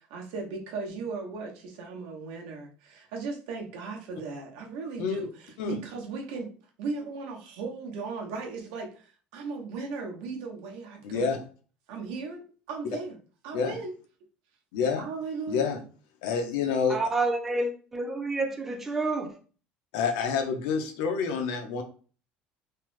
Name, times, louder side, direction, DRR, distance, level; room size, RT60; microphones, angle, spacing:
voice 1, 0.0-6.5 6.8-11.4 11.9-13.2 13.4-13.9 15.0-15.6, right 4 dB, 85° right, 1 dB, 0.8 m, -37 dB
voice 2, 11.0-11.4 13.5-13.7 14.7-15.0 15.5-15.8 16.2-17.0 19.9-21.8, left 6 dB, 90° left, 6 dB, 0.6 m, -28 dB
voice 3, 16.9-19.4, right 2 dB, 10° right, 5 dB, 0.4 m, -29 dB
3.2 x 2.0 x 3.0 m, 0.39 s
cardioid pair, 180°, 3 cm